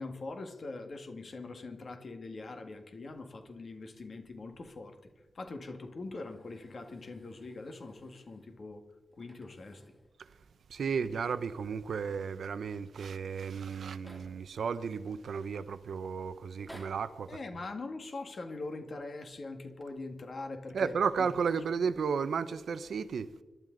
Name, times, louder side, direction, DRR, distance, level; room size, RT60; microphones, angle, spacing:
voice 1, 0.0-5.0 5.4-8.8 9.2-9.8 17.3-20.9 21.2-21.3, left 3 dB, 50° left, 1.8 m, -42 dB
sound 1, 6.1-8.6 9.1-10.2 10.4-10.5 11.0-12.5 13.2-13.3 13.5-14.6 15.2-15.7 16.4-17.2 18.3-18.9 19.6-19.8, equal, ahead, 2.8 m, -58 dB
voice 2, 10.7-17.4 20.7-23.3, right 6 dB, 80° right, 0.7 m, -33 dB
26.5 x 12.0 x 3.9 m
wide cardioid pair, 155°, 0 cm